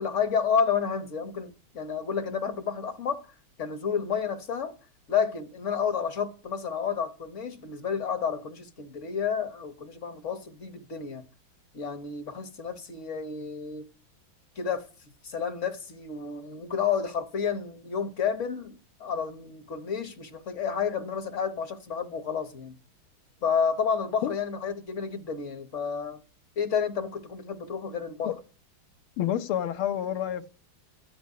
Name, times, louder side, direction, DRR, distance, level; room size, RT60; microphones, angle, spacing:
voice 1, 0.0-3.2 3.6-4.7 5.1-11.2 11.7-13.9 14.6-14.9 15.2-22.7 23.4-26.2 26.6-28.3, left 6 dB, 50° left, 0.9 m, -30 dB
voice 2, 29.2-30.5, left 11 dB, 85° left, 1.8 m, -28 dB
14.0 x 5.3 x 9.5 m
omnidirectional pair, 2.3 m